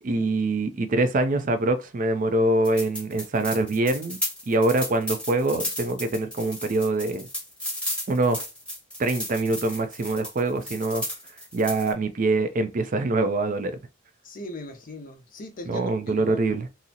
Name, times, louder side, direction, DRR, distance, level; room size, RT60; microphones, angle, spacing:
voice 1, 0.0-4.2 4.5-7.3 8.1-8.5 9.0-11.0 11.5-13.7 15.7-16.7, right 2 dB, 40° right, 0.4 m, -24 dB
sound 1, 2.6-11.9, left 1 dB, 5° left, 1.0 m, -34 dB
voice 2, 14.2-16.5, left 1 dB, 45° left, 0.6 m, -39 dB
3.7 x 2.0 x 2.7 m
head